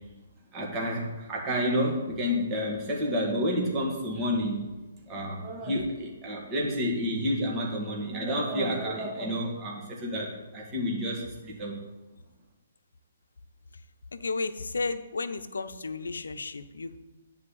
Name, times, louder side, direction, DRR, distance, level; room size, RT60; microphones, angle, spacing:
voice 1, 0.5-4.7 5.1-11.8, equal, 25° right, -3 dB, 2.0 m, -30 dB
voice 2, 14.1-17.0, left 3 dB, 75° left, 11 dB, 0.7 m, -33 dB
9.8 x 4.3 x 7.4 m, 1.2 s
figure-of-eight pair, 130°, 0 cm